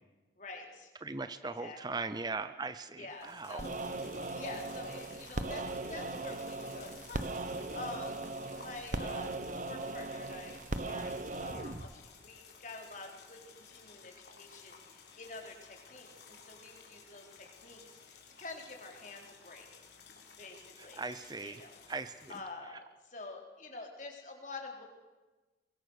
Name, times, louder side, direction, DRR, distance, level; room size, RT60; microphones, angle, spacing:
voice 1, 0.4-0.9 1.4-2.0 3.0-3.7 4.3-7.3 7.7-8.2 8.5-19.8 20.4-21.0 21.4-21.8 22.3-24.8, left 3 dB, 45° left, 2 dB, 4.0 m, -47 dB
voice 2, 1.0-3.6 21.0-21.6 21.9-22.3, right 3 dB, 25° right, 11 dB, 0.6 m, -39 dB
sound 1, 3.1-22.4, left 5 dB, 70° left, 3.8 m, -56 dB
sound 2, 3.6-11.9, right 2 dB, 45° right, 1.0 m, -39 dB
23.0 x 22.0 x 6.6 m, 1.2 s
head